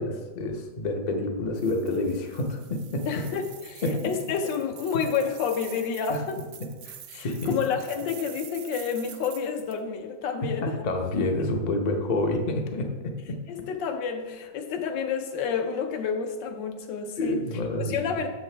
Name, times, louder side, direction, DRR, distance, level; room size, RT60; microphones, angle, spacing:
voice 1, 0.0-3.2 3.8-4.2 4.9-5.0 6.1-6.2 6.6-7.6 10.4-13.4 17.2-18.0, left 2 dB, 65° left, 3 dB, 0.4 m, -28 dB
sound 1, 1.6-9.8, right 10 dB, 75° right, 0.8 m, -46 dB
voice 2, 3.1-6.4 7.1-10.8 13.5-17.4 17.8-18.3, left 6 dB, 90° left, 6 dB, 1.5 m, -29 dB
7.6 x 6.7 x 3.3 m, 1.4 s
omnidirectional pair, 1.9 m